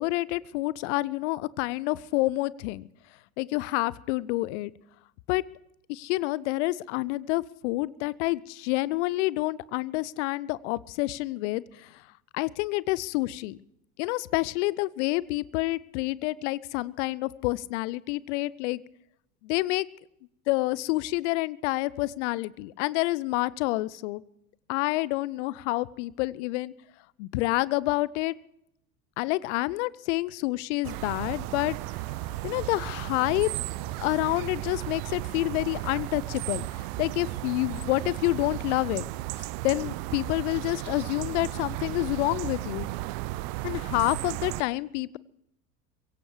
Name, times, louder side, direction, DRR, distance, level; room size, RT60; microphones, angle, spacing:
voice 1, 0.0-2.8 3.4-4.7 5.3-5.4 5.9-11.6 12.3-13.6 14.0-18.8 19.4-19.9 20.5-24.2 24.7-26.7 27.2-28.3 29.2-31.8 32.4-33.5 34.0-36.6 37.0-39.0 39.6-42.9 43.6-45.2, left 20 dB, 45° left, 22 dB, 0.6 m, -28 dB
sound 1, 30.8-44.6, right 18 dB, 40° right, 0.6 m, -34 dB
22.5 x 16.5 x 3.3 m, 0.79 s
figure-of-eight pair, 80°, 49 cm